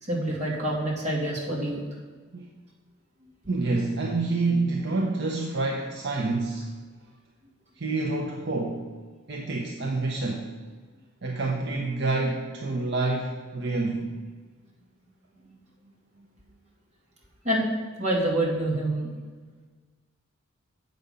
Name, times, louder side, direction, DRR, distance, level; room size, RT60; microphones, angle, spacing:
voice 1, 0.0-1.8 17.4-17.7 18.0-19.1, right 1 dB, 35° right, -5 dB, 2.3 m, -26 dB
voice 2, 3.5-6.7 7.8-8.9 9.3-10.5 11.2-14.2, right 3 dB, 55° right, 0 dB, 0.8 m, -28 dB
7.8 x 5.2 x 6.9 m, 1.4 s
head